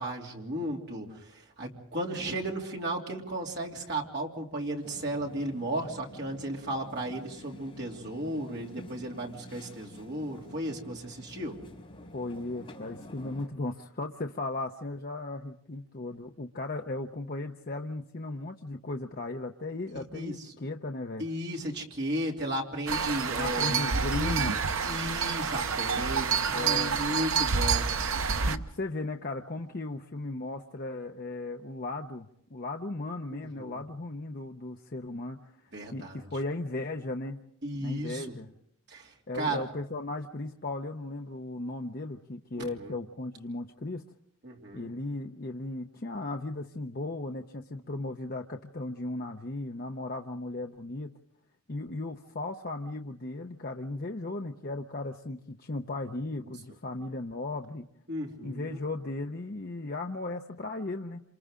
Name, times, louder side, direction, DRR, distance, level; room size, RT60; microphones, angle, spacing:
voice 1, 0.0-11.6 20.1-20.3 21.2-23.8 24.2-24.5 24.9-27.8 33.6-33.8 35.7-36.3 37.6-38.2 38.9-39.6 42.6-42.9 44.4-44.9 58.1-58.8, right 1 dB, 50° right, -1 dB, 3.0 m, -35 dB
sound 1, 4.8-13.5, left 1 dB, 25° left, 4.3 m, -49 dB
voice 2, 12.1-21.3 23.4-24.6 26.5-27.0 28.4-37.4 37.8-38.5 39.3-44.0 44.7-51.1 51.7-57.9 58.4-61.2, left 2 dB, 45° left, 4 dB, 0.7 m, -36 dB
sound 2, 22.9-28.6, right 5 dB, 70° right, 0.9 m, -28 dB
27.5 x 27.5 x 3.8 m, 0.72 s
head